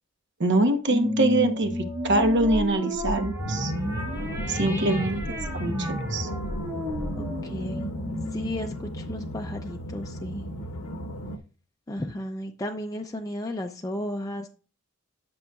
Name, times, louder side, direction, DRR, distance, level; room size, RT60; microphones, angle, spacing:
voice 1, 0.4-3.7 4.5-6.3, right 2 dB, 55° right, 7 dB, 0.9 m, -24 dB
sound 1, 0.9-9.7, left 1 dB, 10° right, 1.5 m, -32 dB
sound 2, 3.4-11.4, equal, 85° left, 0.9 m, -35 dB
voice 2, 7.2-7.9 8.3-10.5 11.9-14.5, left 1 dB, 15° left, 3 dB, 0.4 m, -34 dB
11.0 x 6.1 x 2.3 m, 0.37 s
head